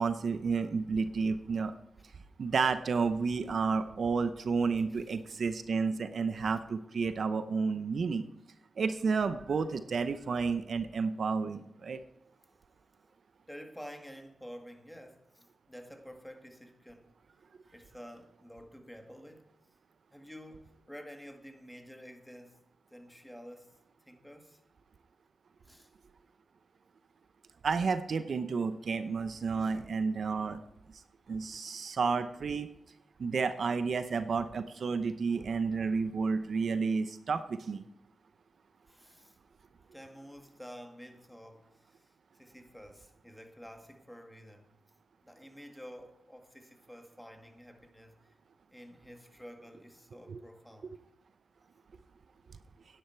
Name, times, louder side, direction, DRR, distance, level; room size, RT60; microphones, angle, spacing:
voice 1, 0.0-1.7 2.4-8.3 8.8-12.0 27.6-30.6 31.3-32.7 33.2-37.8 50.3-50.4, right 5 dB, 70° right, 0.6 m, -31 dB
voice 2, 12.4-13.1 13.5-17.1 17.6-19.5 20.1-22.6 22.9-23.7 24.1-24.6 25.6-25.9 29.6-29.8 38.9-39.4 39.9-44.7 45.2-48.3 48.7-51.0, equal, 5° left, 2.0 m, -50 dB
10.0 x 10.0 x 4.5 m
cardioid pair, 65°, 0 cm